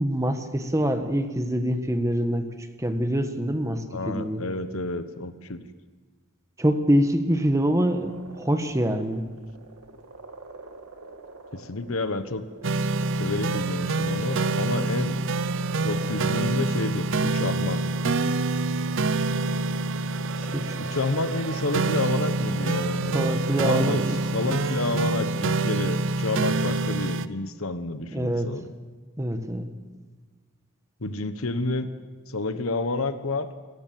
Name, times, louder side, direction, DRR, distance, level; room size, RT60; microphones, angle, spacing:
voice 1, 0.0-2.5 2.8-4.4 6.6-9.2 20.5-20.7 23.1-24.2 24.5-24.6 24.8-24.9 28.1-28.5 29.2-29.7, equal, 15° right, 7 dB, 1.4 m, -25 dB
voice 2, 3.9-5.6 11.5-12.4 13.2-15.2 15.8-17.9 20.8-23.4 23.6-24.1 24.3-28.7 31.0-31.9 32.3-33.5, left 2 dB, 70° left, 11 dB, 1.2 m, -30 dB
sound 1, 7.6-25.4, right 3 dB, 85° right, 2.1 m, -44 dB
sound 2, 12.6-27.3, right 3 dB, 60° right, 0.7 m, -26 dB
27.0 x 14.5 x 7.7 m, 1.4 s
head